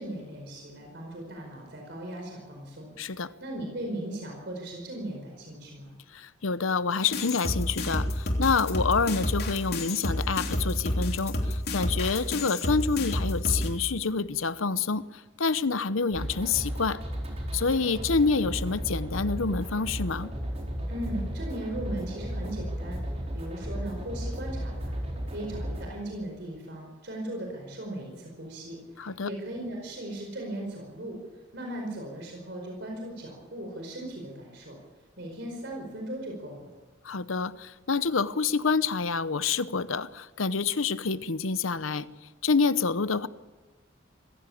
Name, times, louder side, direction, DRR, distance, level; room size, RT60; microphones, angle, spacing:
voice 1, 0.0-5.9 20.9-23.0 23.3-25.0 25.3-31.2 31.5-34.8 35.2-36.7, right 1 dB, 60° right, 5.0 m, -38 dB
voice 2, 3.0-3.3 6.1-17.0 17.5-20.3 29.0-29.3 37.0-42.1 42.4-43.3, left 4 dB, 90° left, 0.9 m, -27 dB
sound 1, 7.1-13.7, left 1 dB, 50° left, 3.3 m, -29 dB
sound 2, 16.1-25.9, equal, 30° right, 4.6 m, -34 dB
25.0 x 16.0 x 8.6 m
head